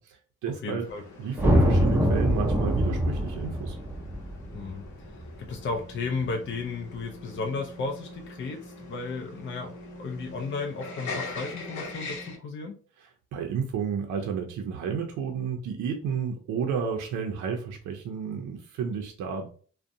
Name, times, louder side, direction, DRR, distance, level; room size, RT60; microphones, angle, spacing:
voice 1, 0.0-0.9 1.2-3.8 13.0-19.5, right 6 dB, 75° right, 3 dB, 0.5 m, -32 dB
voice 2, 0.6-1.0 4.5-4.8 5.4-12.8, left 4 dB, 40° left, 2 dB, 0.5 m, -34 dB
sound 1, 0.8-12.4, left 2 dB, 70° left, 0.8 m, -42 dB
sound 2, 1.4-5.8, equal, 5° right, 0.6 m, -24 dB
2.5 x 2.1 x 2.6 m, 0.42 s
cardioid pair, 90°, 30 cm